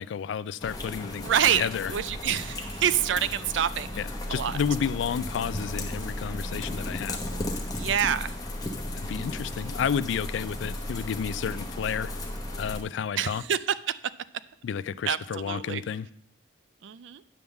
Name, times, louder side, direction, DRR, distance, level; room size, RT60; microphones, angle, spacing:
voice 1, 0.0-1.9 4.0-7.3 8.9-12.1 12.6-13.4 14.6-16.1, left 7 dB, 75° left, 0.3 m, -31 dB
sound 1, 0.6-12.8, left 1 dB, 20° left, 0.9 m, -35 dB
voice 2, 1.2-1.6 1.9-4.0 4.3-4.6 7.3-8.3 13.2-13.6 13.9-14.0 15.1-15.8 16.8-17.2, right 9 dB, 70° right, 0.4 m, -27 dB
9.4 x 3.6 x 7.0 m
head